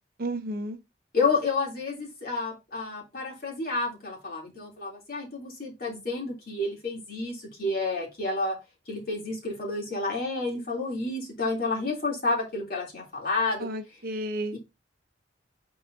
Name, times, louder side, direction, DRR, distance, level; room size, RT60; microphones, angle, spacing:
voice 1, 0.2-0.8 13.6-14.6, right 1 dB, 55° right, 0.8 m, -32 dB
voice 2, 1.1-8.6 8.9-13.7 14.5-14.6, left 3 dB, 55° left, 2.9 m, -30 dB
9.0 x 4.0 x 2.6 m
head